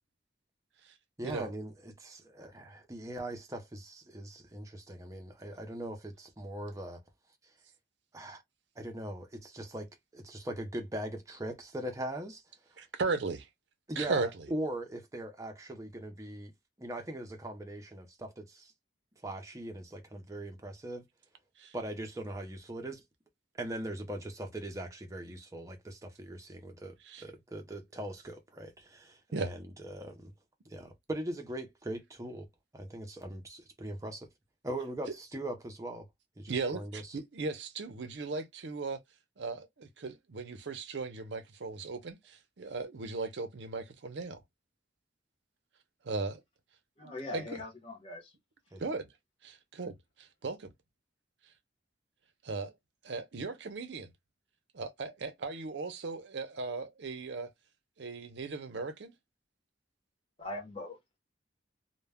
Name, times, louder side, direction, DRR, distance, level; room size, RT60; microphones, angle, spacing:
voice 1, 1.2-7.0 8.1-8.4 8.8-12.4 13.9-16.5 16.8-18.7 19.2-21.0 21.7-23.0 23.6-30.3 30.6-32.5 32.7-34.3 34.6-36.1 36.4-37.2 48.7-48.8, right 1 dB, 15° right, 0.6 m, -40 dB
voice 2, 12.8-13.5 14.0-14.3 21.6-21.7 27.0-27.2 29.3-29.5 36.5-39.0 39.4-44.4 46.0-46.4 47.0-47.6 48.8-49.1 49.4-50.7 52.4-52.7 53.0-54.1 54.7-57.5 58.0-59.1, right 4 dB, 75° right, 0.6 m, -37 dB
voice 3, 47.0-48.3 60.4-61.0, left 2 dB, 30° left, 0.8 m, -41 dB
2.2 x 2.1 x 3.4 m
head